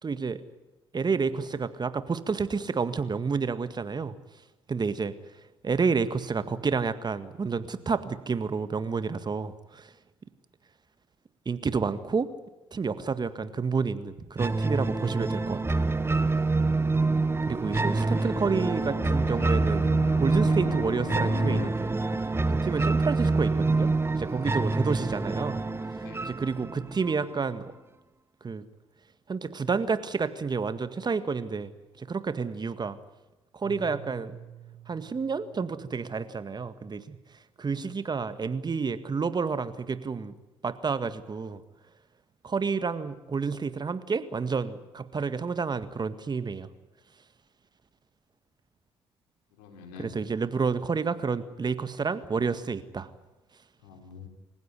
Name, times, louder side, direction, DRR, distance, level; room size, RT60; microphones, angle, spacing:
voice 1, 0.0-0.4 0.9-4.2 4.7-5.1 5.6-9.9 11.5-12.3 12.7-15.9 17.4-19.9 20.2-21.9 22.5-25.6 26.2-27.7 28.4-28.7 29.3-31.7 32.0-33.0 33.5-34.4 34.9-37.2 37.6-40.4 40.6-41.6 42.4-46.7 50.2-53.1, right 5 dB, 35° right, 13 dB, 1.8 m, -30 dB
sound 1, 14.4-27.4, right 3 dB, 20° right, 1.4 m, -26 dB
Fixed-wing aircraft airplane, 17.0-21.7, left 10 dB, 60° left, 1.2 m, -40 dB
voice 2, 17.4-18.4 19.3-19.6 22.6-22.8 24.2-24.9 26.0-26.4 49.5-50.2 53.8-54.3, left 3 dB, 80° left, 5 dB, 4.1 m, -46 dB
Keyboard (musical), 33.6-36.7, right 7 dB, 70° right, 8.0 m, -49 dB
28.0 x 16.0 x 9.7 m, 1.0 s
hypercardioid pair, 50°, 12 cm